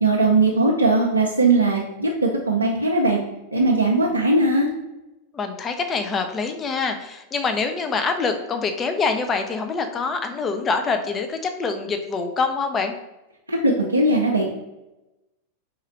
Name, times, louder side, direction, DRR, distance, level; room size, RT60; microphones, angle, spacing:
voice 1, 0.0-3.2 3.5-4.7 13.5-14.5, right 2 dB, 85° right, -2 dB, 0.5 m, -19 dB
voice 2, 5.3-12.9, left 4 dB, 25° left, 6 dB, 0.5 m, -25 dB
3.7 x 3.2 x 4.2 m, 0.98 s
figure-of-eight pair, 90°, 0 cm